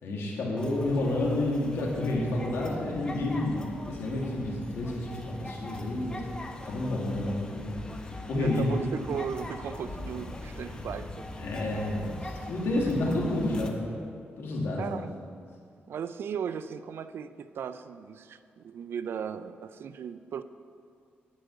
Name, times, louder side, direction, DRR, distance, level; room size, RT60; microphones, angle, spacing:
voice 1, 0.0-6.2 6.6-7.8 8.3-8.8 11.4-14.0 14.4-15.0, left 1 dB, 85° left, -3 dB, 2.2 m, -30 dB
sound 1, 0.6-13.7, left 2 dB, 20° left, 1.0 m, -41 dB
voice 2, 8.4-11.3 13.0-13.1 14.8-15.1 15.9-20.4, right 7 dB, 70° right, 12 dB, 0.4 m, -37 dB
10.5 x 5.1 x 8.1 m, 2.3 s
cardioid pair, 100°, 4 cm